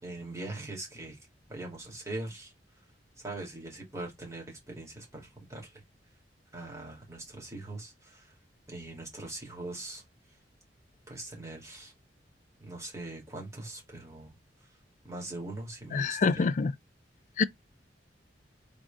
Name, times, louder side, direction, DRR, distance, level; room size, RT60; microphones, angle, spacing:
voice 1, 0.0-1.2 1.5-2.5 3.2-5.8 6.5-8.3 8.7-10.0 11.1-11.9 12.6-14.7 15.0-16.5, right 2 dB, 15° right, 2.5 m, -41 dB
voice 2, 15.9-16.7 17.4-17.5, left 4 dB, 45° left, 0.3 m, -26 dB
4.0 x 3.7 x 3.4 m
head